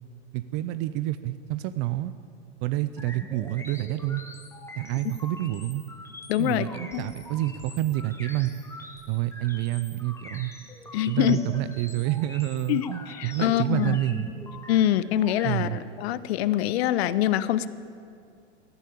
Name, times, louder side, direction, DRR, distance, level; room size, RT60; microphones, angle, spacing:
voice 1, 0.3-2.1 2.6-4.2 4.8-5.8 6.4-8.5 9.1-10.5 11.1-14.3 15.4-15.8, right 15 dB, 30° right, 13 dB, 0.5 m, -28 dB
sound 1, 3.0-15.8, left 2 dB, 5° left, 1.2 m, -44 dB
voice 2, 6.3-6.7 6.9-7.0 10.9-11.4 12.7-14.0 14.7-17.7, left 12 dB, 60° left, 16 dB, 0.7 m, -24 dB
14.5 x 11.0 x 8.5 m, 2.4 s
hypercardioid pair, 120°, 36 cm